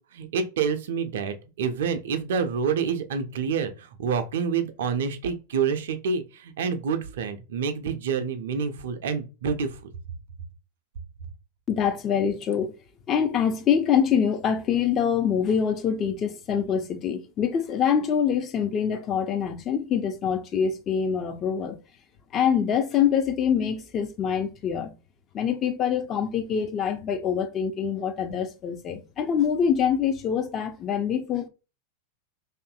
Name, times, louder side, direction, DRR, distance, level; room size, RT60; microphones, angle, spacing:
voice 1, 0.1-9.7, right 6 dB, 60° right, 0.4 m, -27 dB
voice 2, 11.7-12.7 13.1-21.8 22.3-24.9 25.3-31.5, left 8 dB, 30° left, 0.4 m, -25 dB
2.6 x 2.4 x 2.2 m
figure-of-eight pair, 90°, 0 cm